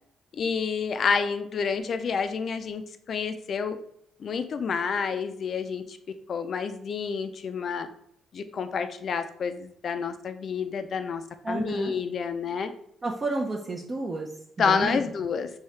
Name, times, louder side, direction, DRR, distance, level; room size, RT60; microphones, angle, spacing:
voice 1, 0.3-2.8 3.1-3.8 4.2-6.0 6.3-7.9 8.3-12.7 14.6-15.5, left 6 dB, 55° left, 9 dB, 0.4 m, -29 dB
voice 2, 11.4-11.9 13.0-14.3 14.7-15.0, right 2 dB, 35° right, -1 dB, 0.5 m, -30 dB
4.7 x 2.7 x 3.2 m, 0.69 s
cardioid pair, 90°, 0 cm